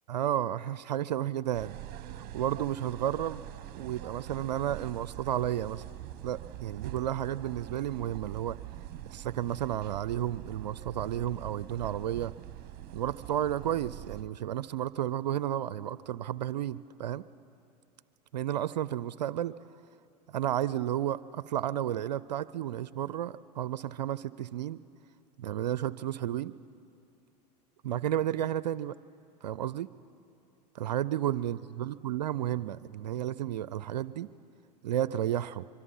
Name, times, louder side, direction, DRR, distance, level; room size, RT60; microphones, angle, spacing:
voice 1, 0.1-1.7 2.2-3.4 3.7-5.8 6.2-8.6 9.0-12.3 12.9-17.3 18.3-19.6 20.3-24.8 25.4-26.5 27.8-29.0 29.4-29.9 30.7-34.3 34.8-35.7, right 11 dB, 80° right, 18 dB, 0.5 m, -32 dB
sound 1, 1.5-14.2, right 13 dB, 45° right, 1.0 m, -44 dB
25.0 x 23.0 x 5.5 m, 2.6 s
hypercardioid pair, 85°, 21 cm